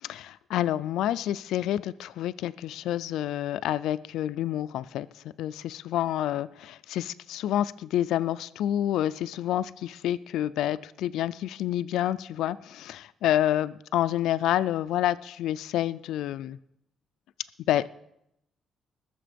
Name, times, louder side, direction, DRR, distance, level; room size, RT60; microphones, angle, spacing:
voice 1, 0.0-16.6 17.7-17.9, left 12 dB, 85° left, 13 dB, 0.4 m, -28 dB
20.5 x 6.9 x 5.2 m, 0.81 s
cardioid pair, 90°, 0 cm